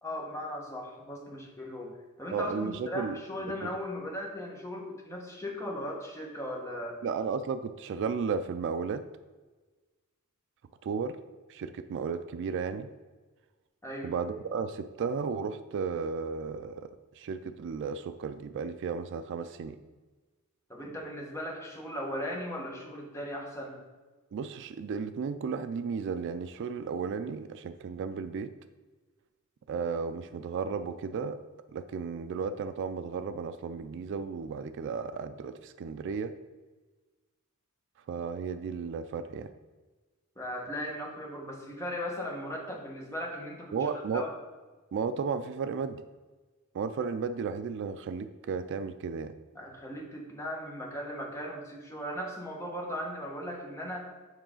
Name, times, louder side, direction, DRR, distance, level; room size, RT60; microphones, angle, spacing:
voice 1, 0.0-1.9 2.2-7.0 13.8-14.1 20.7-23.8 40.4-44.3 49.5-54.1, equal, 15° left, -1 dB, 1.2 m, -37 dB
voice 2, 2.3-3.2 3.5-3.6 7.0-9.0 10.8-11.2 11.5-12.9 14.0-16.9 17.2-19.8 24.3-28.5 29.7-31.4 31.7-36.3 38.1-39.5 43.7-44.3 44.9-46.0 46.7-49.3, right 5 dB, 55° right, 11 dB, 0.3 m, -34 dB
7.2 x 4.8 x 3.8 m, 1.3 s
head